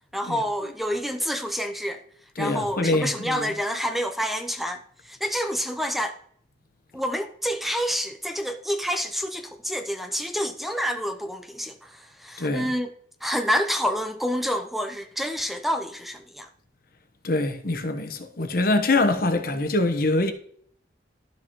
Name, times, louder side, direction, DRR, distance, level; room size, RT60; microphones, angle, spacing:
voice 1, 0.1-2.0 2.4-6.1 6.9-12.9 13.2-16.5, equal, ahead, 0.6 m, -28 dB
voice 2, 2.4-3.5 12.4-12.7 17.2-20.3, left 2 dB, 55° left, 1.1 m, -24 dB
12.5 x 6.3 x 3.0 m
head